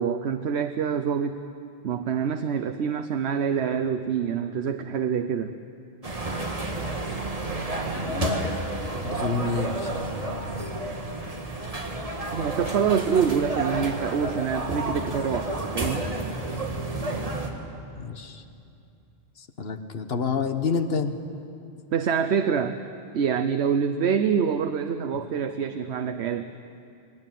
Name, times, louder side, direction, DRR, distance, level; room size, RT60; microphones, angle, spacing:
voice 1, 0.0-1.4 1.8-5.5 12.3-16.0 21.9-22.8 23.1-26.5, right 7 dB, 90° right, 8 dB, 1.0 m, -26 dB
sound 1, 6.0-17.5, right 2 dB, 35° right, 1.9 m, -30 dB
voice 2, 7.9-8.4 9.0-10.9 17.9-18.4 19.4-21.1, left 4 dB, 70° left, 8 dB, 1.4 m, -29 dB
22.0 x 18.0 x 9.2 m, 2.6 s
omnidirectional pair, 1.1 m